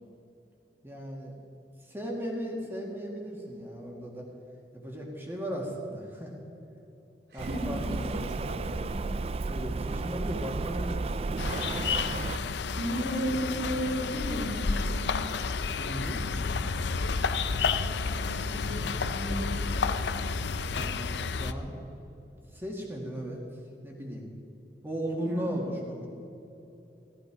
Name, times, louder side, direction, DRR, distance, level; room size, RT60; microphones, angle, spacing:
voice 1, 0.8-1.3 1.8-4.3 4.7-6.3 7.3-8.2 9.5-11.7 15.7-16.2 20.7-21.8 22.5-23.4 23.8-24.3 24.8-26.1, equal, 10° right, -1 dB, 2.1 m, -36 dB
voice 2, 7.3-9.1 12.8-15.2 17.8-19.8 25.2-25.6, equal, 65° right, -1 dB, 3.0 m, -35 dB
Rain, 7.4-12.4, right 3 dB, 35° right, 0.3 m, -33 dB
sound 1, 11.4-21.5, left 4 dB, 75° left, 0.6 m, -30 dB
15.5 x 14.0 x 4.9 m, 3.0 s
head